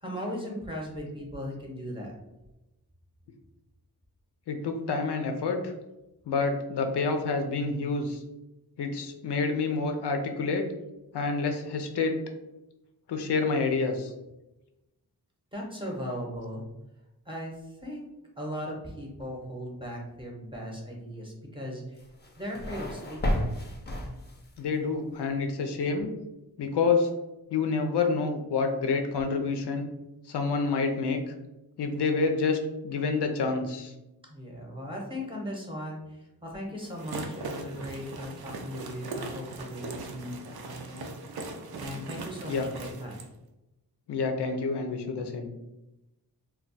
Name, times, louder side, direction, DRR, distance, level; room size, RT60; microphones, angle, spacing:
voice 1, 0.0-2.1 15.5-16.6 17.3-18.1 18.4-22.0 22.4-23.4 34.3-41.1 41.8-43.2, equal, 15° right, -2 dB, 0.7 m, -38 dB
voice 2, 4.5-5.7 6.3-8.2 8.8-10.6 11.1-12.2 13.1-14.1 24.6-26.1 26.6-27.1 27.5-29.9 30.3-31.2 31.8-32.6 32.8-33.9 41.9-42.7 44.1-45.5, left 4 dB, 80° left, 5 dB, 0.5 m, -28 dB
sound 1, 22.0-24.7, left 1 dB, 25° left, 0.5 m, -32 dB
sound 2, 36.8-43.3, right 3 dB, 65° right, 0.5 m, -40 dB
2.3 x 2.2 x 3.8 m, 0.97 s
wide cardioid pair, 110°, 40 cm